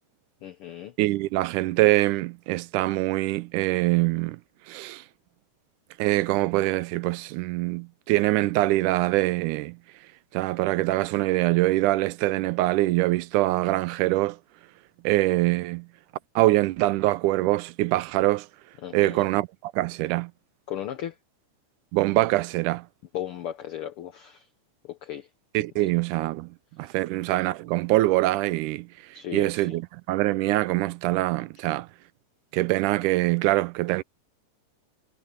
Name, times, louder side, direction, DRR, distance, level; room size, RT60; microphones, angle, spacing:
voice 1, 0.4-0.9 18.8-19.3 20.7-21.2 23.1-24.5 24.8-25.3 25.8-25.9 26.8-27.0 29.1-29.8, left 11 dB, 85° left, 1.2 m, -36 dB
voice 2, 1.0-4.4 4.7-5.0 6.0-9.8 10.3-14.4 15.0-15.9 16.4-18.5 18.9-20.3 21.9-22.9 25.5-26.5 26.8-28.9 29.3-31.9 32.5-34.0, right 18 dB, 85° right, 2.1 m, -24 dB
omnidirectional pair, 3.6 m